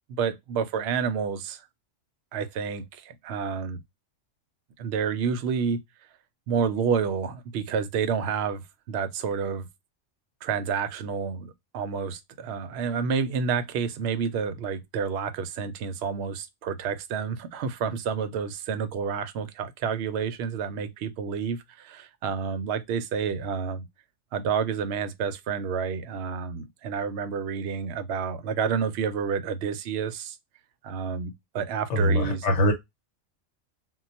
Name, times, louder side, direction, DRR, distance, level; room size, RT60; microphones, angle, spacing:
voice 1, 0.1-1.6 2.3-3.8 4.8-5.8 6.5-9.7 10.4-23.8 24.3-30.4 30.8-32.5, right 6 dB, 65° right, 0.8 m, -29 dB
voice 2, 31.9-32.7, equal, 75° left, 1.0 m, -22 dB
2.3 x 2.2 x 3.9 m
omnidirectional pair, 1.3 m